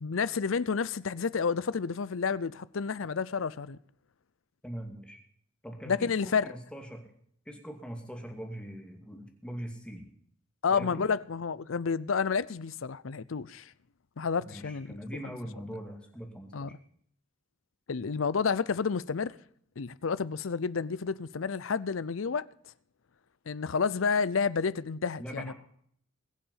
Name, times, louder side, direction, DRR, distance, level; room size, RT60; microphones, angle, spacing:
voice 1, 0.0-3.8 5.9-6.5 10.6-13.7 14.2-14.9 15.2-15.3 16.5-16.8 17.9-19.4 19.8-22.5 23.5-25.5, left 5 dB, 75° left, 0.6 m, -30 dB
voice 2, 4.6-5.2 5.6-7.0 7.5-10.1 10.7-11.0 14.4-16.7 25.2-25.5, equal, 5° left, 2.5 m, -41 dB
21.5 x 7.2 x 5.6 m
head